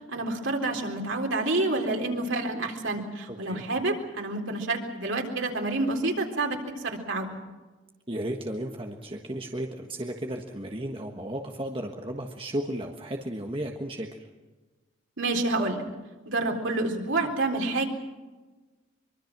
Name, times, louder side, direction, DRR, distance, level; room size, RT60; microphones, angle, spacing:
voice 1, 0.1-6.6 6.8-7.4 15.2-15.8 16.3-17.9, right 2 dB, 90° right, 2 dB, 3.8 m, -28 dB
voice 2, 3.3-3.6 8.1-14.1, right 1 dB, 30° right, 2 dB, 1.5 m, -34 dB
24.0 x 24.0 x 6.1 m, 1.2 s
head